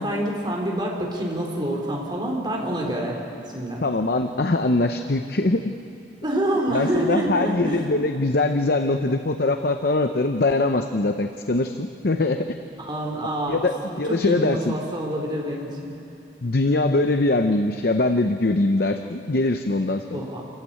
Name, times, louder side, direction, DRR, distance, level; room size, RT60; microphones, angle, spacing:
voice 1, 0.0-3.2 3.5-3.8 6.2-7.8 12.8-13.6 13.9-15.9 20.1-20.4, right 1 dB, 25° right, -1 dB, 3.7 m, -26 dB
voice 2, 3.8-5.6 6.7-12.4 13.5-13.7 14.0-14.8 16.4-20.3, left 2 dB, 55° left, 7 dB, 0.7 m, -22 dB
27.5 x 15.0 x 8.8 m, 2.7 s
head